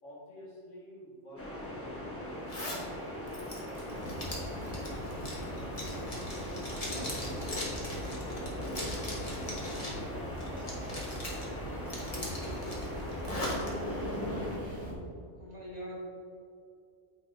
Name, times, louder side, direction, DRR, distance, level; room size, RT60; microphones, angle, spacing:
voice 1, 0.0-2.4 3.0-4.6 5.1-5.2 5.9-8.7 9.2-12.9, equal, 85° left, -6 dB, 2.1 m, -51 dB
sound 1, 1.3-14.6, left 1 dB, 10° left, 1.0 m, -41 dB
Zipper (clothing), 2.5-2.8 3.3-10.0 10.4-11.4 11.8-13.7, left 1 dB, 30° left, 1.2 m, -40 dB
sound 2, 3.9-14.9, equal, 65° right, 1.7 m, -40 dB
voice 2, 6.9-7.4 15.3-16.0, equal, 35° right, -6 dB, 1.7 m, -44 dB
8.6 x 4.8 x 2.5 m, 2.5 s
omnidirectional pair, 1.2 m